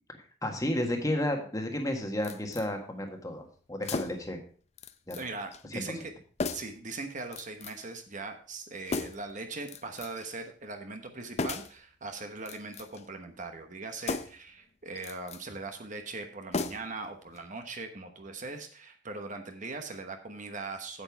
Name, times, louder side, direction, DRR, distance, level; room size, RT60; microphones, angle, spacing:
voice 1, 0.4-4.4 5.1-5.2 5.7-5.8, left 1 dB, 20° left, 4 dB, 1.5 m, -32 dB
sound 1, 2.2-2.7 3.8-4.3 4.8-5.3 5.5-5.6 6.4-6.8 7.3-7.9 8.9-9.3 9.7-10.3 11.4-11.8 12.4-13.1 14.0-14.5 15.0-15.4 16.5-17.1 17.4-17.5, left 3 dB, 35° left, 0.5 m, -36 dB
voice 2, 5.1-6.1 6.5-21.0, right 3 dB, 40° right, 5 dB, 1.1 m, -40 dB
8.7 x 8.0 x 4.6 m, 0.43 s
head